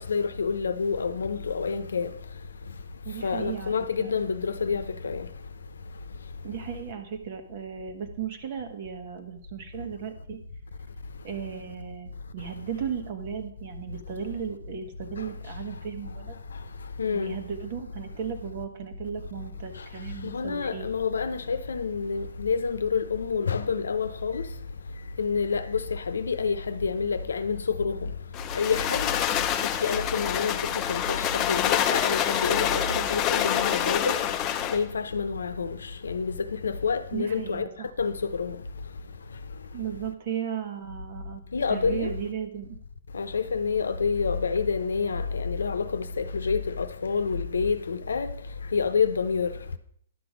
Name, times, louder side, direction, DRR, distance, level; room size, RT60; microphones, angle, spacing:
voice 1, 0.1-2.1 3.2-5.3 17.0-17.4 20.3-24.4 25.2-28.1 28.5-29.1 29.8-30.6 30.9-34.1 34.7-35.8 36.0-36.3 36.6-37.6 38.0-38.6 41.5-42.1 43.1-48.3 48.7-49.5, left 5 dB, 90° left, 0.7 m, -28 dB
voice 2, 3.0-4.1 6.4-10.4 11.2-16.4 17.1-20.9 37.1-37.9 39.7-41.4 41.7-42.8, right 8 dB, 50° right, 1.4 m, -35 dB
sound 1, 28.3-34.8, left 10 dB, 25° left, 0.6 m, -27 dB
11.0 x 6.1 x 5.1 m
hypercardioid pair, 140°, 0 cm